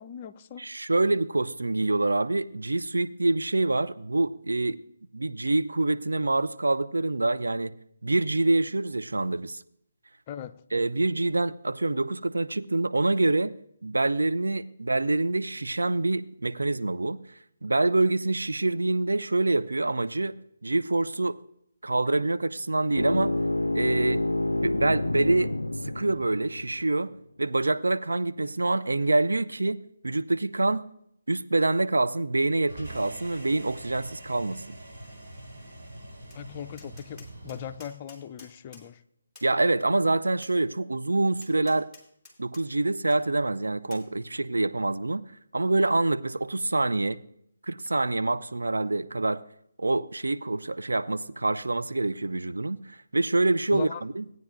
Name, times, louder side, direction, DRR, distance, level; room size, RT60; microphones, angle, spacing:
voice 1, 0.0-0.7 10.3-10.6 36.3-39.0 53.7-54.0, left 9 dB, 30° left, 0.5 m, -39 dB
voice 2, 0.6-4.8 5.1-7.7 8.0-9.6 10.7-13.5 13.8-17.2 17.6-20.4 20.6-21.4 21.8-23.3 23.7-25.6 25.8-27.1 27.4-30.9 31.3-34.7 39.4-41.9 42.4-45.2 45.5-47.2 47.6-49.4 49.8-54.2, right 2 dB, 80° right, 0.5 m, -26 dB
sound 1, 22.9-26.9, left 2 dB, 85° left, 0.3 m, -28 dB
sound 2, 32.7-37.8, right 1 dB, 40° right, 4.6 m, -44 dB
Tap, 36.3-36.4 36.8-38.9 39.3-39.5 40.4-40.6 41.4-42.6 43.1-43.2 43.9-44.1, left 3 dB, ahead, 2.7 m, -51 dB
16.5 x 9.3 x 2.5 m
figure-of-eight pair, 150°, 0 cm